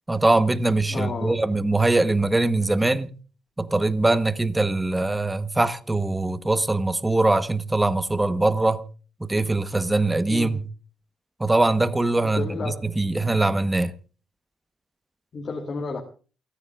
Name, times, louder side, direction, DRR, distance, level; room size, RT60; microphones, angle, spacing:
voice 1, 0.1-3.1 3.6-8.8 9.2-10.6 11.4-13.9, right 2 dB, 15° right, 1.2 m, -22 dB
voice 2, 0.9-1.3 10.3-10.5 12.2-12.7 15.3-16.0, left 4 dB, 45° left, 2.8 m, -31 dB
29.0 x 9.8 x 2.5 m
cardioid pair, 90°, 0 cm